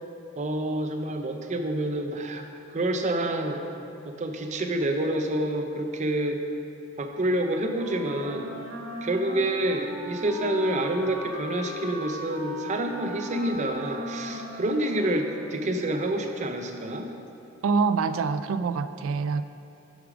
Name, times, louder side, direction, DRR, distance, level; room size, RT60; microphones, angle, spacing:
voice 1, 0.4-2.4 2.7-3.6 4.0-6.4 7.0-8.5 9.0-17.1, right 1 dB, 35° right, 4 dB, 0.6 m, -28 dB
Wind instrument woodwind instrument, 7.7-16.0, equal, 65° right, 0.9 m, -37 dB
voice 2, 17.6-19.4, right 5 dB, 85° right, 12 dB, 0.3 m, -25 dB
8.1 x 5.0 x 4.9 m, 2.7 s
head